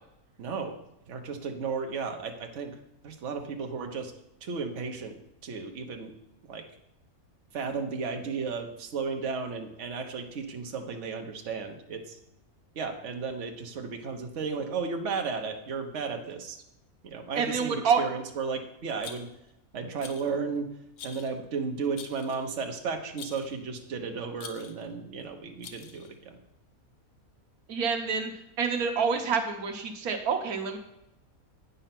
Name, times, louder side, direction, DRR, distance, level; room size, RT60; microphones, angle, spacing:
voice 1, 0.4-0.7 1.1-2.7 3.0-4.1 4.4-5.2 5.4-6.1 6.5-6.6 7.5-12.2 12.7-16.6 17.0-19.3 19.7-20.7 21.0-26.4, right 5 dB, 55° right, 3 dB, 1.2 m, -34 dB
voice 2, 17.3-18.0 27.7-30.8, right 6 dB, 80° right, 5 dB, 1.4 m, -28 dB
Rattle, 19.0-19.5 20.0-20.4 21.0-21.4 22.0-22.5 23.2-23.6 24.4-24.9 25.6-26.1, left 6 dB, 90° left, 1.3 m, -46 dB
9.1 x 5.5 x 5.9 m, 0.84 s
omnidirectional pair, 1.5 m